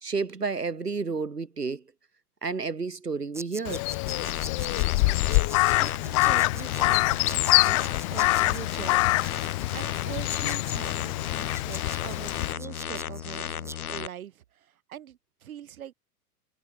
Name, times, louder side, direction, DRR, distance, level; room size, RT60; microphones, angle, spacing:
voice 1, 0.0-1.8 2.4-3.9, right 4 dB, 90° right, 1.7 m, -31 dB
sound 1, 3.3-13.8, right 2 dB, 5° right, 5.5 m, -45 dB
Crow, 3.6-12.5, left 26 dB, 25° left, 0.4 m, -25 dB
sound 2, 4.1-14.1, left 9 dB, 65° left, 4.9 m, -35 dB
voice 2, 5.0-7.8 8.1-15.9, right 10 dB, 65° right, 5.7 m, -43 dB
figure-of-eight pair, 100°, 46 cm